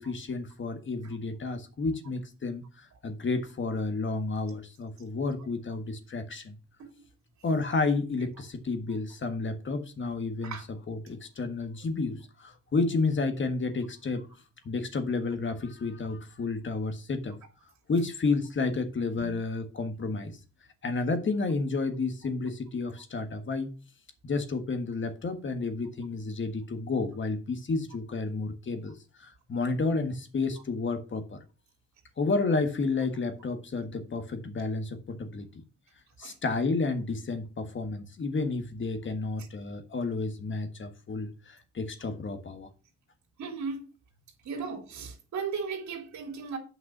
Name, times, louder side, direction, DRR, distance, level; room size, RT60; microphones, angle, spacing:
voice 1, 0.0-6.5 7.4-10.5 10.9-14.3 14.6-17.4 17.9-20.4 20.8-23.7 24.2-31.4 32.2-35.5 36.2-42.7, left 3 dB, 40° left, 1.6 m, -31 dB
voice 2, 43.4-43.9 44.4-46.6, right 5 dB, 65° right, 3.1 m, -36 dB
8.3 x 5.9 x 6.0 m
cardioid pair, 90°, 30 cm